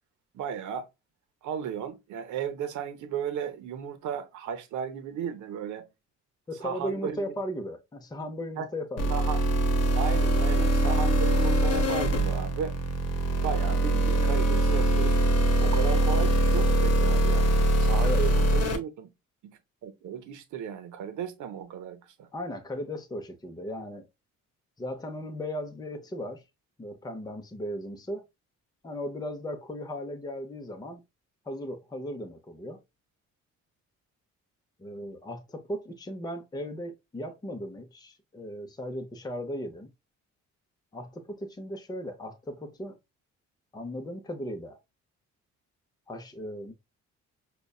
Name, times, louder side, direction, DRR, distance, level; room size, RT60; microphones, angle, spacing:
voice 1, 0.3-0.9 1.4-5.8 6.6-7.3 8.6-8.7 9.1-9.4 9.9-12.8 13.3-15.3 15.6-17.5 17.8-19.1 19.4-22.3, right 7 dB, 75° right, 0.8 m, -35 dB
voice 2, 6.5-9.2 18.0-18.2 22.3-24.1 24.8-26.4 26.8-28.2 28.8-31.0 31.4-32.8 34.8-39.9 40.9-43.0 43.7-44.8 46.1-46.7, equal, 15° left, 0.6 m, -37 dB
sound 1, 9.0-18.8, right 1 dB, 55° left, 0.9 m, -23 dB
5.1 x 2.3 x 2.3 m
cardioid pair, 90°, 30 cm